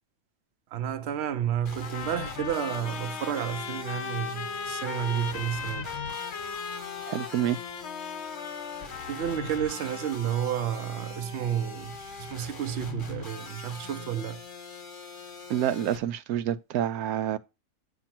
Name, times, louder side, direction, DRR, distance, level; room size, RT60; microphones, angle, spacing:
voice 1, 0.7-5.9 9.1-14.4, right 10 dB, 60° right, 0.8 m, -31 dB
sound 1, 1.6-16.0, left 4 dB, 35° left, 1.2 m, -42 dB
sound 2, 1.8-10.2, left 7 dB, 55° left, 0.9 m, -38 dB
voice 2, 7.1-7.6 15.5-17.4, right 11 dB, 85° right, 1.1 m, -28 dB
8.8 x 3.0 x 5.8 m
omnidirectional pair, 1.5 m